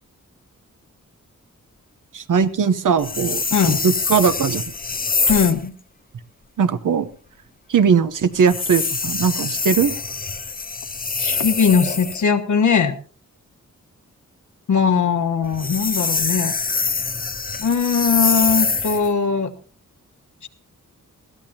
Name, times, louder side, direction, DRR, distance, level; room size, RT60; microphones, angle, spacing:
voice 1, 2.1-4.6 6.6-7.1 7.7-9.9, right 6 dB, 85° right, 11 dB, 1.0 m, -19 dB
sound 1, 3.0-5.6 8.4-12.2 15.4-19.1, left 4 dB, 30° left, 0.7 m, -24 dB
voice 2, 5.3-5.7 11.2-12.9 14.7-16.5 17.6-19.5 20.4-20.5, left 6 dB, 70° left, 6 dB, 1.3 m, -19 dB
21.0 x 15.0 x 2.9 m, 0.41 s
wide cardioid pair, 105°, 31 cm